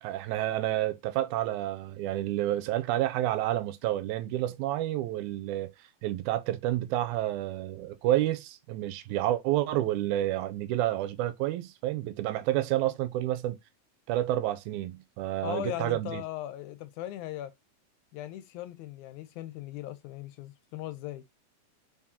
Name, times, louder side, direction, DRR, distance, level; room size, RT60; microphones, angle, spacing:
voice 1, 0.0-5.7 6.0-13.6 14.1-16.2, right 14 dB, 85° right, 2.0 m, -29 dB
voice 2, 15.4-17.5 18.1-21.2, left 13 dB, 85° left, 2.0 m, -38 dB
4.7 x 3.6 x 2.8 m
omnidirectional pair, 3.4 m